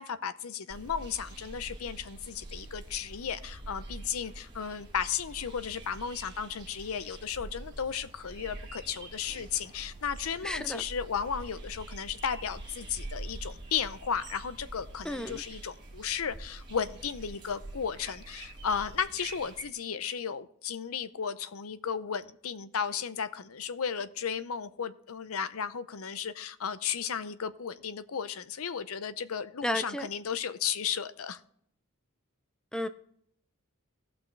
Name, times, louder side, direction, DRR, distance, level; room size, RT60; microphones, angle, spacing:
voice 1, 0.0-31.4, left 7 dB, 70° left, 13 dB, 0.6 m, -34 dB
sound 1, 0.7-19.6, right 2 dB, 20° right, 1.9 m, -45 dB
voice 2, 10.4-10.8 15.0-15.4 29.6-30.1 32.7-32.9, left 1 dB, 5° left, 10 dB, 0.4 m, -32 dB
18.0 x 6.0 x 3.3 m, 0.67 s
head